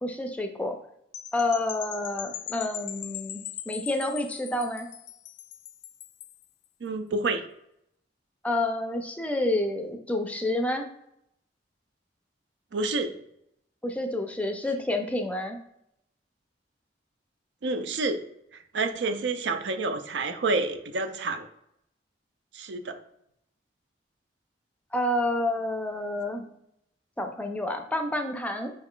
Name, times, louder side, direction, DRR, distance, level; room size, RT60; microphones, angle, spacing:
voice 1, 0.0-0.7 1.3-4.9 8.4-10.9 13.8-15.6 24.9-26.5 27.2-28.7, left 1 dB, 10° left, 4 dB, 0.4 m, -29 dB
sound 1, 1.1-6.4, left 11 dB, 75° left, 0.3 m, -40 dB
voice 2, 6.8-7.5 12.7-13.1 17.6-18.2 18.5-21.5 22.5-23.0, right 3 dB, 75° right, 8 dB, 0.5 m, -29 dB
4.7 x 2.4 x 3.6 m, 0.77 s
head